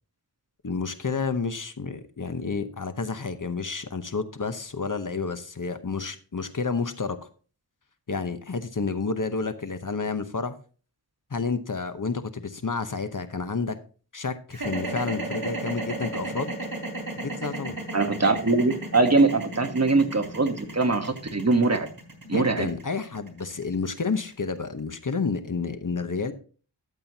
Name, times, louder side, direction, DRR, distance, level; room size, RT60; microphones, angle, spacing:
voice 1, 0.6-7.2 8.1-10.6 11.3-13.8 14.1-16.5 17.2-17.8 22.3-26.3, left 4 dB, 50° left, 10 dB, 0.9 m, -30 dB
sound 1, 14.5-24.7, right 2 dB, 55° right, 3.3 m, -34 dB
voice 2, 17.9-21.9 22.3-22.7, right 3 dB, 35° right, 7 dB, 1.2 m, -22 dB
13.0 x 7.6 x 2.8 m, 0.39 s
wide cardioid pair, 55°, 42 cm